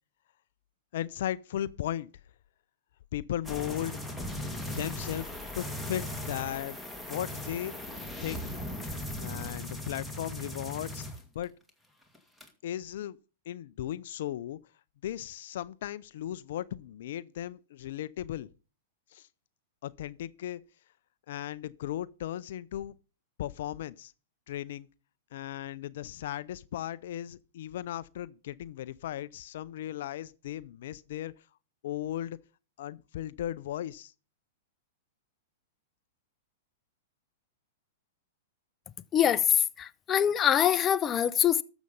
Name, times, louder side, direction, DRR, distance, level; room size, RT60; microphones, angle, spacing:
voice 1, 0.9-2.1 3.1-4.3 4.8-6.8 7.1-7.7 8.2-8.4 9.2-11.5 12.6-13.2 13.5-14.6 15.0-18.5 19.1-19.3 19.8-20.6 21.3-22.9 23.4-24.1 24.5-24.9 25.3-31.5 31.8-32.4 32.8-34.1, left 12 dB, 65° left, 0.5 m, -36 dB
sound 1, 3.4-11.7 12.0-12.5, left 1 dB, ahead, 2.3 m, -38 dB
voice 2, 39.1-41.6, left 9 dB, 25° left, 0.7 m, -24 dB
12.5 x 7.1 x 5.4 m
hypercardioid pair, 115°, 0 cm